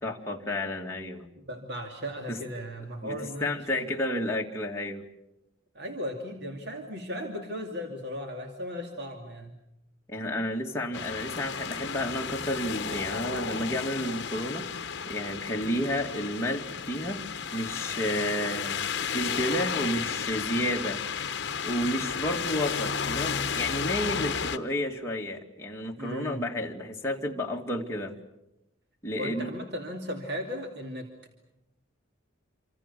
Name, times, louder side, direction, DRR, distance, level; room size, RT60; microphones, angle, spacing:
voice 1, 0.0-1.3 2.3-2.4 3.0-5.0 10.1-17.2 17.5-21.0 21.6-28.1 29.0-29.5, left 1 dB, 15° left, -1 dB, 2.3 m, -31 dB
voice 2, 1.4-4.0 5.7-9.5 26.0-26.4 29.2-31.1, equal, 55° right, 3 dB, 2.7 m, -36 dB
sound 1, 10.9-24.6, left 6 dB, 55° left, 1.0 m, -33 dB
27.5 x 26.0 x 6.9 m, 0.89 s
head